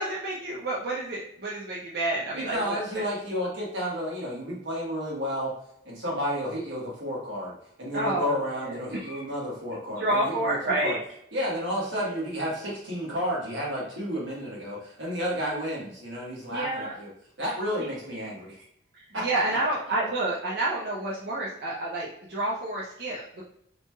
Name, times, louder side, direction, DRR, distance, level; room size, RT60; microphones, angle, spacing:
voice 1, 0.0-3.0 7.9-9.3 10.0-11.0 16.5-16.9 17.8-17.9 18.9-23.4, right 2 dB, 55° right, -5 dB, 0.6 m, -29 dB
voice 2, 2.3-5.5 5.8-10.6 10.8-11.0 11.3-17.1 17.4-18.6 19.1-19.2, equal, 90° right, -4 dB, 1.2 m, -31 dB
2.9 x 2.8 x 2.2 m, 0.73 s
head